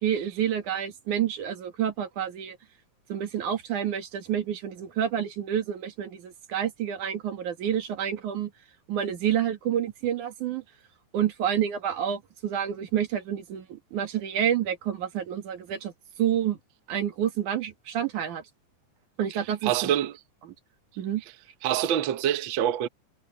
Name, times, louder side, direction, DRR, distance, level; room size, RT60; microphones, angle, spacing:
voice 1, 0.0-2.6 3.1-8.5 8.9-10.6 11.1-15.9 16.2-16.6 16.9-18.4 19.2-19.9 20.4-20.5 21.0-21.2, right 9 dB, 90° right, 3.4 m, -28 dB
voice 2, 19.6-20.1 21.6-22.9, right 11 dB, 60° right, 1.3 m, -25 dB
omnidirectional pair, 3.4 m